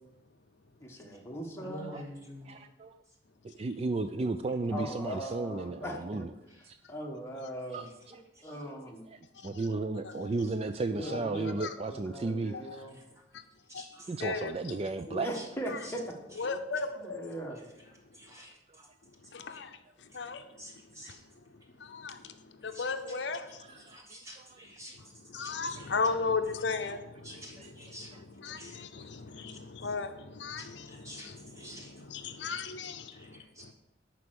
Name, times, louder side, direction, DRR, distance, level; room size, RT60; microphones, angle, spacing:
voice 1, 0.8-1.9 4.7-6.3 6.5-9.0 10.9-13.0 15.0-16.1 17.0-17.6, right 1 dB, 15° left, 0 dB, 1.5 m, -40 dB
voice 2, 1.6-2.6 8.4-8.5 12.9-13.0 13.7-14.1 15.3-15.4 15.8-15.9 18.1-18.9 19.2-19.6 20.6-21.2 22.7-22.9 23.8-25.1 25.4-25.9 27.2-28.2 28.5-28.8 29.5-29.6 30.6-31.3 31.5-32.1 33.1-33.7, equal, 15° right, -2 dB, 2.1 m, -48 dB
voice 3, 2.5-2.9 3.6-6.2 6.7-6.8 7.7-7.8 9.4-12.5 14.1-15.3 23.9-24.0 27.6-27.7, right 3 dB, 30° right, 9 dB, 0.3 m, -33 dB
voice 4, 9.4-9.7 10.0-10.3 11.1-11.2 11.6-11.7 12.5-12.8 13.3-13.4 13.7-13.9 14.2-14.8 16.4-17.2 19.3-20.4 21.0-21.1 21.8-23.6 25.1-33.7, left 4 dB, 65° left, 8 dB, 0.7 m, -36 dB
11.0 x 4.5 x 7.9 m, 0.94 s
head